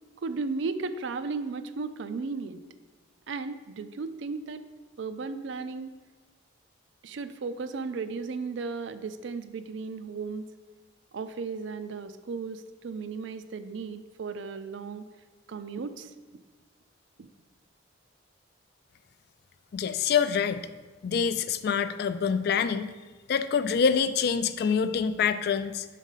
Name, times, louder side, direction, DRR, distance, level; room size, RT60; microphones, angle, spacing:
voice 1, 0.2-2.6 3.3-4.6 5.0-5.9 7.0-10.5 11.1-15.1 15.5-16.1 17.2-17.3, right 4 dB, 70° right, 11 dB, 0.4 m, -35 dB
voice 2, 19.7-20.6 21.0-22.9 23.3-25.9, left 6 dB, 55° left, 12 dB, 0.3 m, -26 dB
6.4 x 3.7 x 5.5 m, 1.3 s
head